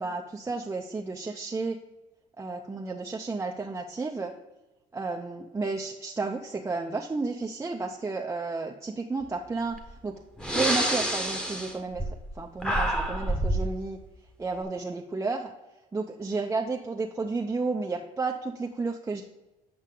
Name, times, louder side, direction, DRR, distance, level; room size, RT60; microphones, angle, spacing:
voice 1, 0.0-1.8 2.4-4.3 4.9-9.8 10.0-10.2 10.5-12.0 12.4-14.0 14.4-15.5 15.9-19.2, right 3 dB, 15° right, 0 dB, 0.5 m, -32 dB
Breathing, 9.7-9.9 10.4-12.3 12.6-13.7, right 1 dB, 5° left, 1.0 m, -27 dB
8.2 x 5.5 x 3.7 m, 1.0 s
cardioid pair, 110°, 17 cm